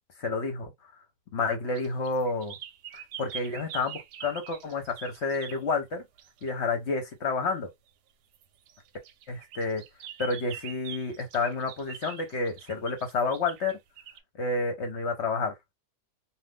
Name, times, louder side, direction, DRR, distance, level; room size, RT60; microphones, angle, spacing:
voice 1, 0.2-0.7 1.3-2.5 2.9-6.0 6.4-7.7 9.3-9.8 10.2-13.8 14.4-15.5, left 3 dB, 50° left, 0.9 m, -30 dB
sound 1, 1.8-5.6 6.2-6.5 8.3-14.2, right 9 dB, 85° right, 1.2 m, -44 dB
2.5 x 2.5 x 3.5 m
omnidirectional pair, 1.7 m